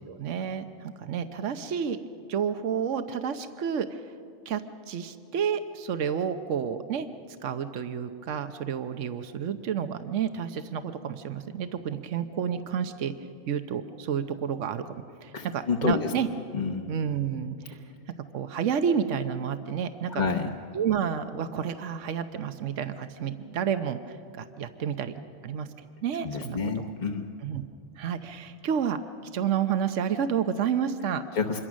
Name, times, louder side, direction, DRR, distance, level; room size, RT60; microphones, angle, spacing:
voice 1, 0.1-2.0 2.3-4.0 4.5-7.1 7.4-13.1 13.5-14.9 15.2-16.3 16.9-17.8 18.3-20.2 20.7-25.2 25.4-25.7 26.0-26.6 26.8-26.9 27.4-27.6 28.0-29.0 29.3-31.2, right 8 dB, 80° right, 9 dB, 1.2 m, -30 dB
voice 2, 15.3-16.1 16.5-16.9 20.1-20.5 26.2-27.2 31.3-31.6, left 5 dB, 40° left, 2 dB, 1.1 m, -28 dB
26.5 x 22.5 x 6.3 m, 2.4 s
omnidirectional pair, 1.2 m